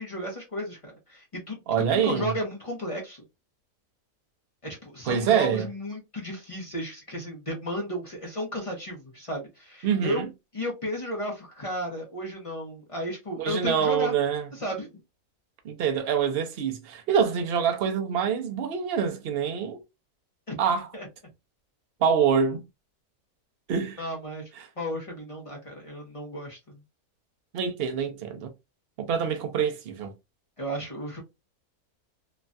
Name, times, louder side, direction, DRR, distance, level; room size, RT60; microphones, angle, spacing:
voice 1, 0.0-1.6 1.9-3.2 4.6-10.2 10.5-14.1 14.6-15.0 20.5-20.6 20.9-21.1 24.0-24.5 24.8-26.8 30.6-31.2, equal, 30° left, 0.6 m, -34 dB
voice 2, 1.7-2.3 5.1-5.6 9.8-10.3 13.4-14.5 15.6-19.8 20.6-20.9 22.0-22.6 23.7-24.0 24.6-24.7 27.5-28.5 29.0-30.1, right 7 dB, 60° right, 0.6 m, -25 dB
3.1 x 2.2 x 2.5 m
omnidirectional pair, 1.6 m